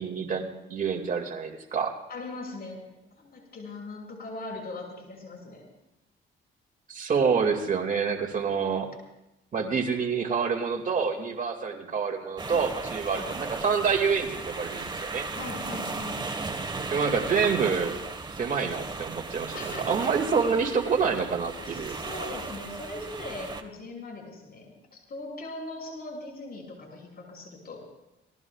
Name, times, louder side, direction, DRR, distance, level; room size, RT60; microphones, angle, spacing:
voice 1, 0.0-1.9 6.9-8.9 9.5-15.3 16.9-18.0 18.4-22.0, right 5 dB, 40° right, 2 dB, 2.2 m, -27 dB
voice 2, 2.1-2.8 3.2-5.7 13.1-13.3 15.3-16.2 19.5-20.0 20.8-21.0 21.6-27.8, left 2 dB, 50° left, 0 dB, 6.3 m, -40 dB
sound 1, 12.4-23.6, right 3 dB, 20° right, 1.4 m, -36 dB
28.5 x 18.5 x 2.4 m, 0.94 s
cardioid pair, 105°, 21 cm